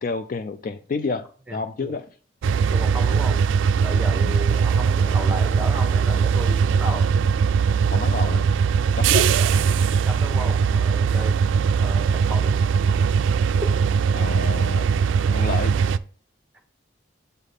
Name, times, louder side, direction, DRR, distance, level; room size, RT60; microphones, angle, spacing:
voice 1, 0.0-2.0 4.2-4.4 7.9-8.5 9.0-9.3 14.1-14.9 15.3-15.8, left 4 dB, 45° left, 0.3 m, -29 dB
voice 2, 1.5-2.0 2.7-3.4 3.8-7.1 9.9-11.4 11.8-12.6 13.5-13.8, equal, 5° right, 0.9 m, -34 dB
sound 1, 2.4-16.0, right 6 dB, 75° right, 0.3 m, -20 dB
8.1 x 4.0 x 3.4 m
head